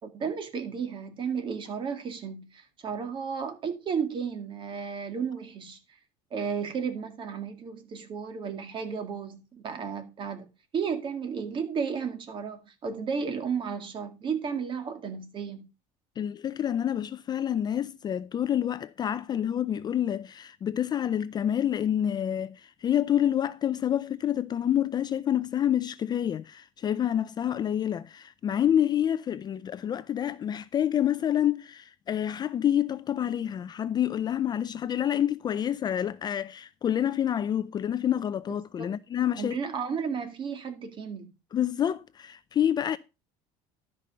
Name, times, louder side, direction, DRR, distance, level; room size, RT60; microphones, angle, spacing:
voice 1, 0.0-5.8 6.3-10.5 10.7-15.7 38.8-38.9 39.4-41.3, right 6 dB, 35° right, 2.0 m, -33 dB
voice 2, 16.2-39.6 41.5-43.0, left 10 dB, 30° left, 0.4 m, -28 dB
12.0 x 5.4 x 5.4 m
cardioid pair, 130°, 14 cm